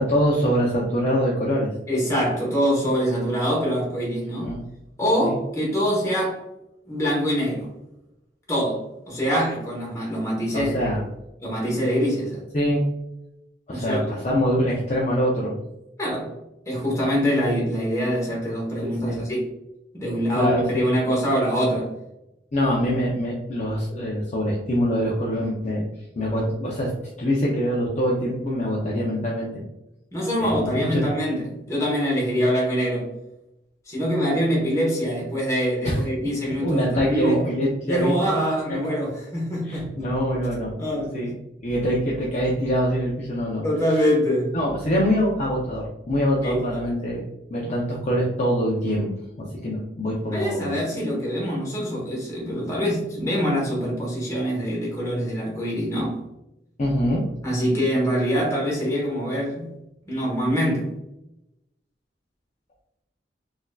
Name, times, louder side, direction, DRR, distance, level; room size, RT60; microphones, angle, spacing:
voice 1, 0.0-1.7 4.3-4.6 5.2-5.4 10.5-11.0 12.5-12.8 13.7-15.5 18.8-19.2 20.3-20.8 22.5-25.9 26.2-26.9 27.2-29.6 30.4-31.1 35.8-36.0 36.6-38.1 39.6-40.7 41.1-41.3 41.6-43.6 43.9-44.0 44.5-47.2 47.5-49.1 49.4-50.8 56.8-57.2, equal, 40° left, 0.6 m, -24 dB
voice 2, 1.9-4.5 5.0-6.4 6.9-7.7 8.5-10.9 11.4-12.4 13.7-14.0 16.0-16.3 16.7-19.5 19.9-21.9 30.1-33.1 33.9-37.5 37.9-39.9 40.8-41.1 43.6-44.6 46.4-46.8 50.3-56.2 57.4-59.7 60.1-60.9, equal, 20° left, 1.1 m, -24 dB
4.1 x 2.6 x 2.3 m
head